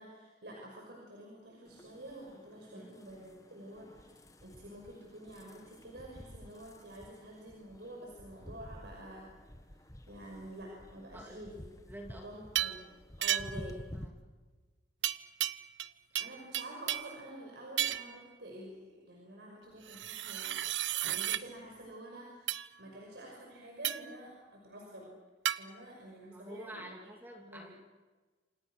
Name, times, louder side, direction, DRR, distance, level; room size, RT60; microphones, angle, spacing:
voice 1, 0.0-9.3 9.7-11.7 12.0-12.8 13.2-13.8 16.2-20.6 21.0-25.1 25.5-26.9 27.5-27.7, right 1 dB, 65° right, -1 dB, 5.8 m, -49 dB
sound 1, 1.6-14.1, left 1 dB, 20° left, 1.4 m, -51 dB
voice 2, 11.1-11.5 11.8-12.3 13.9-14.1 26.2-27.8, right 1 dB, 10° right, 1 dB, 2.9 m, -48 dB
sound 2, 12.5-12.8 13.2-13.7 15.0-15.9 16.1-17.2 17.8-18.2 19.9-21.4 22.5-22.7 23.8-24.1 25.4-25.6, right 12 dB, 85° right, 0.8 m, -33 dB
28.0 x 27.5 x 6.4 m, 1.3 s
head